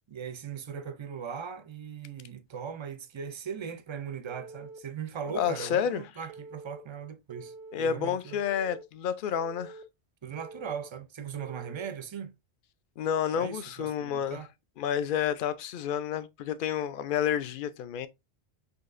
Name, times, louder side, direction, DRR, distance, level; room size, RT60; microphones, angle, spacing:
voice 1, 0.1-8.4 10.2-12.3 13.3-14.5, right 7 dB, 45° right, 0.4 m, -39 dB
Telephone, 4.3-4.8 5.3-5.8 6.3-6.8 7.3-7.8 8.3-8.8 9.3-9.8 10.3-10.8 11.3-11.8, right 3 dB, 85° right, 0.9 m, -46 dB
voice 2, 5.3-6.0 7.7-9.8 13.0-14.4 14.8-18.1, left 8 dB, 60° left, 0.6 m, -30 dB
6.2 x 2.8 x 2.5 m
omnidirectional pair, 1.1 m